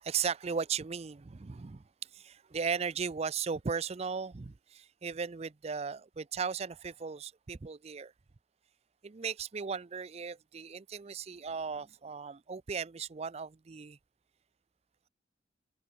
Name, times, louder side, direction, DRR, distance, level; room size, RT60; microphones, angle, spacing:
voice 1, 0.0-1.8 2.1-8.1 9.0-14.0, right 6 dB, 35° right, 0.5 m, -36 dB
head